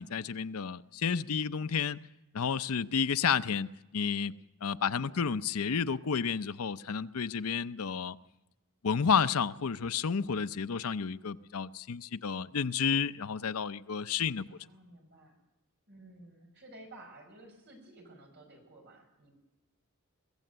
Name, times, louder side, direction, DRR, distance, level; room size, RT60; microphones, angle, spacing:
voice 1, 0.0-2.0 2.3-4.3 4.6-8.2 8.8-14.5, left 6 dB, 85° left, 0.6 m, -31 dB
voice 2, 4.8-5.4 14.5-15.4 15.9-19.3, right 1 dB, 50° right, 5.4 m, -54 dB
22.5 x 16.0 x 8.0 m
head